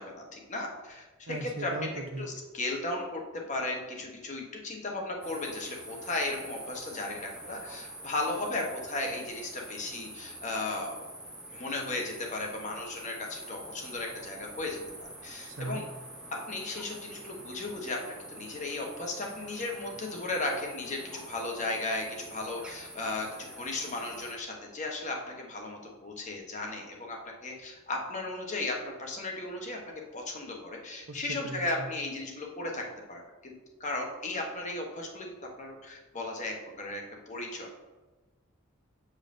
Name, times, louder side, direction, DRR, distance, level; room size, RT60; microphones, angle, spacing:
voice 1, 0.0-1.7 2.2-3.2 3.5-11.0 11.5-15.9 16.5-18.0 18.3-23.3 23.5-29.8 30.1-32.8 33.1-33.5 33.8-35.3 35.6-37.7, left 2 dB, 35° left, 0 dB, 1.0 m, -35 dB
voice 2, 1.3-2.2 15.5-15.8 31.1-31.9, right 2 dB, 65° right, 5 dB, 0.7 m, -38 dB
sound 1, 5.2-24.3, right 1 dB, 5° right, 0.6 m, -46 dB
8.0 x 5.3 x 2.6 m, 1.2 s
head